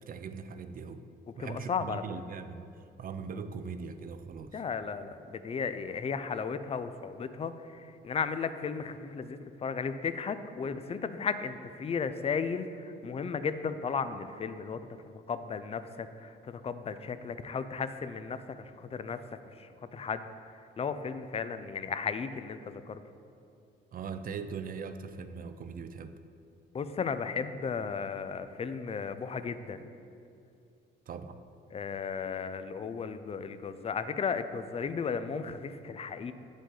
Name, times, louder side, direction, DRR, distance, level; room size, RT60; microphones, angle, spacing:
voice 1, 0.1-1.0 1.4-2.7 3.0-4.6 23.9-26.1 31.1-31.4, right 5 dB, 45° right, 10 dB, 0.4 m, -40 dB
voice 2, 1.4-2.0 4.5-19.2 19.5-20.3 20.8-23.0 26.7-29.9 31.7-36.3, left 5 dB, 30° left, 11 dB, 0.4 m, -35 dB
8.3 x 5.1 x 3.8 m, 2.5 s
cardioid pair, 90°, 20 cm